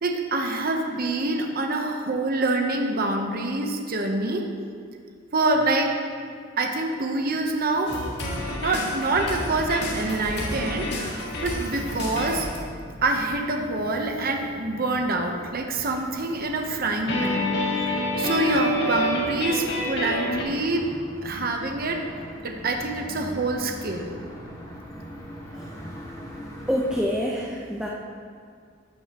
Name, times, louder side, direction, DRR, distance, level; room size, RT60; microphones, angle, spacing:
voice 1, 0.0-4.5 5.3-5.9 6.6-8.0 8.6-12.5 13.0-17.4 17.7-20.9 21.2-22.0 22.4-24.1, right 2 dB, 50° right, 3 dB, 0.9 m, -26 dB
sound 1, 7.9-12.6 17.1-20.4, left 1 dB, 60° left, 1.8 m, -28 dB
sound 2, 9.2-27.0, equal, 20° left, 1.4 m, -42 dB
voice 2, 26.7-27.9, equal, 5° right, -4 dB, 0.7 m, -26 dB
13.5 x 8.9 x 3.0 m, 2.1 s
head